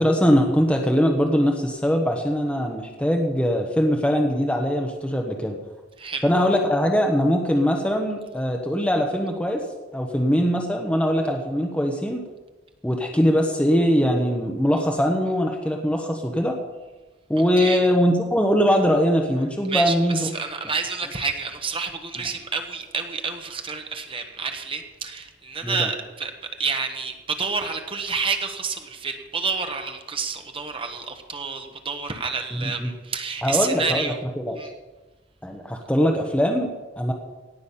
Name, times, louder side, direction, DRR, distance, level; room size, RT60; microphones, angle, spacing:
voice 1, 0.0-5.6 6.2-9.6 9.9-12.2 12.8-16.6 17.3-20.3 25.6-25.9 32.5-32.9 33.4-34.6 35.4-37.1, equal, 5° left, 1 dB, 1.2 m, -22 dB
voice 2, 19.7-26.3 26.6-34.2 34.6-34.7, right 5 dB, 30° right, 5 dB, 1.3 m, -29 dB
17.5 x 6.3 x 8.6 m, 1.2 s
head